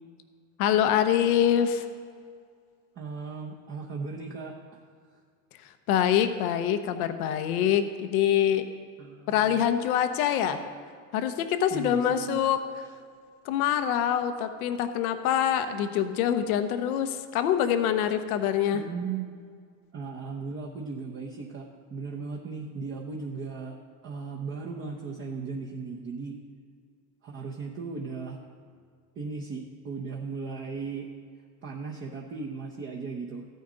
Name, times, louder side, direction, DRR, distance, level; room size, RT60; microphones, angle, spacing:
voice 1, 0.6-1.8 5.9-8.6 9.3-10.6 11.1-12.6 13.4-18.8, left 9 dB, 90° left, 9 dB, 0.9 m, -25 dB
voice 2, 2.9-4.8 9.0-9.7 11.7-12.5 18.7-19.2 19.9-23.8 24.0-26.4 27.2-28.4 29.2-31.1 31.6-33.5, right 4 dB, 30° right, -1 dB, 0.8 m, -37 dB
14.0 x 9.3 x 3.9 m, 2.1 s
supercardioid pair, 140°, 42 cm